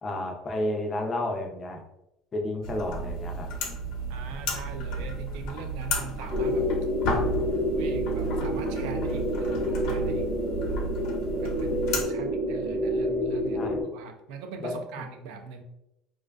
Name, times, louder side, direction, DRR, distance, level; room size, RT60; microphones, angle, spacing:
voice 1, 0.0-1.8 2.3-3.5 13.5-13.8 14.6-14.8, left 1 dB, 20° left, 2 dB, 0.4 m, -31 dB
sound 1, 2.6-12.0, right 1 dB, 70° left, 0.6 m, -33 dB
voice 2, 4.1-6.7 7.7-10.3 11.4-15.6, right 5 dB, 80° right, 5 dB, 0.3 m, -41 dB
sound 2, 6.3-13.8, equal, 25° right, 0.6 m, -28 dB
2.5 x 2.2 x 2.2 m, 0.85 s
cardioid pair, 165°, 0 cm